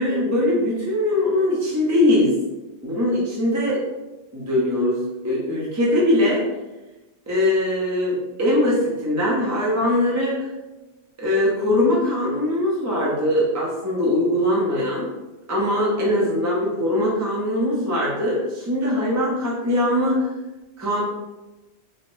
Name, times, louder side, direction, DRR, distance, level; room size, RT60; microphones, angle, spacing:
voice 1, 0.0-2.3 2.8-3.8 4.3-6.4 7.3-10.5 11.2-15.1 15.5-20.3 20.8-21.0, left 1 dB, 20° right, -5 dB, 0.5 m, -21 dB
3.6 x 2.1 x 3.0 m, 1.1 s
omnidirectional pair, 1.2 m